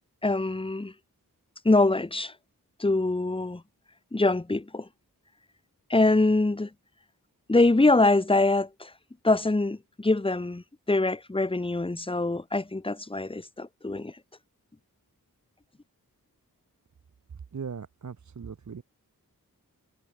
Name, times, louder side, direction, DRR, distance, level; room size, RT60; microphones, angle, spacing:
voice 1, 0.2-0.9 1.6-2.3 2.8-3.6 4.1-4.9 5.9-6.7 7.5-8.9 9.2-14.1, left 2 dB, 15° left, 0.9 m, -24 dB
voice 2, 17.5-18.8, right 6 dB, 55° right, 0.7 m, -39 dB
wide cardioid pair, 50°, 35 cm